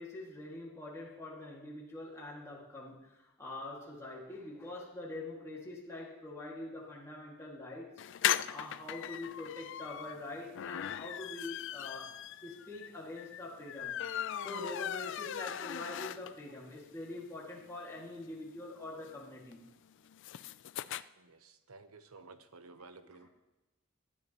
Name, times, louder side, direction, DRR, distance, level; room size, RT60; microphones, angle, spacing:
voice 1, 0.0-7.9 8.5-12.1 12.4-14.0 14.4-19.6, left 2 dB, 15° left, -5 dB, 2.0 m, -44 dB
sound 1, 8.0-16.6 17.0-17.1 17.3-17.4 17.6-21.0, left 11 dB, 55° left, 0.3 m, -38 dB
voice 2, 21.2-23.3, right 3 dB, 85° right, 10 dB, 1.0 m, -54 dB
19.0 x 12.5 x 3.0 m, 1.0 s
head